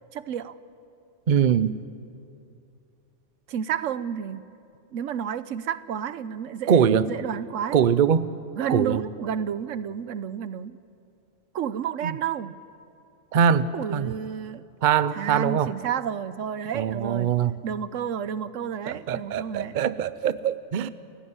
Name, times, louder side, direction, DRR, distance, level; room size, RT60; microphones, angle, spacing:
voice 1, 0.1-0.6 3.5-4.4 4.9-7.8 8.5-10.8 11.5-12.5 13.7-14.6 15.1-17.3 17.6-19.7, right 8 dB, 85° right, 15 dB, 1.1 m, -31 dB
voice 2, 1.3-1.8 6.7-7.1 7.7-8.3 8.7-9.1 12.0-12.2 13.3-14.1 14.8-15.7 16.7-17.6 18.9-20.9, right 8 dB, 45° right, 15 dB, 0.7 m, -22 dB
29.0 x 15.5 x 9.6 m, 2.5 s
omnidirectional pair, 1.3 m